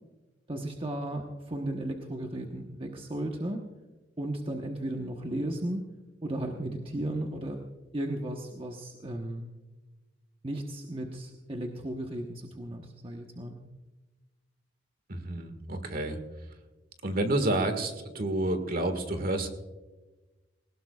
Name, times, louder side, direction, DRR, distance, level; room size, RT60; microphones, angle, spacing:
voice 1, 0.5-3.6 4.2-5.8 6.2-7.6 7.9-9.5 10.4-13.6, right 1 dB, 30° right, 2 dB, 1.1 m, -35 dB
voice 2, 15.1-16.2 17.0-19.5, right 1 dB, 50° right, 7 dB, 1.8 m, -29 dB
21.0 x 18.5 x 2.4 m, 1.2 s
head